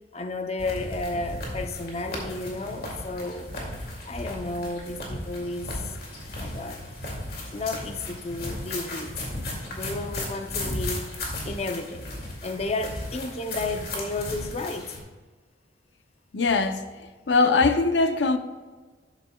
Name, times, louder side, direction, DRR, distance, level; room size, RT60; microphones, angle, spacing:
voice 1, 0.1-3.5 4.0-5.8 6.3-6.8 7.5-9.1 9.7-11.1 11.4-12.1 12.4-14.9, left 2 dB, 35° left, 0.6 m, -32 dB
sound 1, 0.6-15.0, left 1 dB, 60° left, 2.4 m, -35 dB
voice 2, 16.3-16.8 17.3-18.4, left 3 dB, 85° left, 0.7 m, -21 dB
11.5 x 9.1 x 2.3 m
head